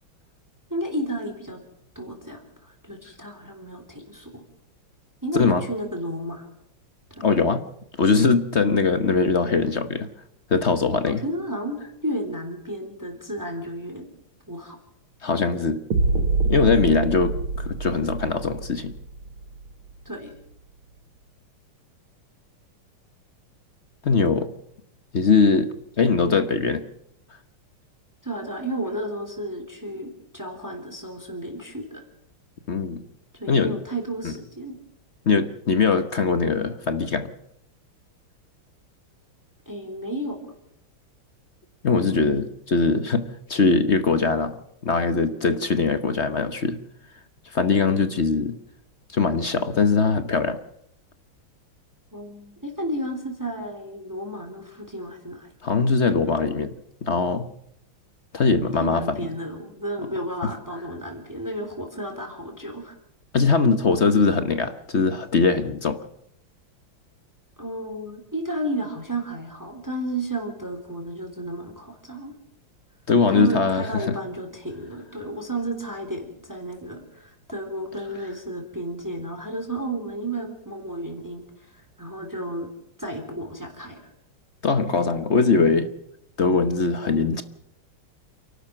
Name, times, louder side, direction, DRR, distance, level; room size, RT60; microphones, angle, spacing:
voice 1, 0.7-1.6 1.9-4.4 5.2-6.5 7.1-7.2 11.0-14.1 14.5-14.8 20.0-20.3 28.2-32.0 33.3-34.8 39.7-40.5 52.1-55.5 58.5-62.9 67.6-72.3 73.3-82.7 83.0-84.1, right 1 dB, 10° right, 4 dB, 3.2 m, -32 dB
voice 2, 7.2-7.6 8.0-10.1 10.5-11.2 15.2-15.8 16.5-18.9 24.0-24.5 25.1-26.8 32.7-33.0 33.5-33.8 34.2-34.3 35.3-37.3 41.8-46.8 47.5-48.6 49.1-50.6 55.6-56.7 57.0-57.5 58.3-59.2 63.3-66.0 73.1-74.2 84.6-85.9 86.4-87.4, left 4 dB, 45° left, 11 dB, 1.0 m, -21 dB
sound 1, 15.9-19.9, right 3 dB, 75° right, 2.7 m, -26 dB
28.5 x 12.0 x 7.8 m, 0.77 s
omnidirectional pair, 2.3 m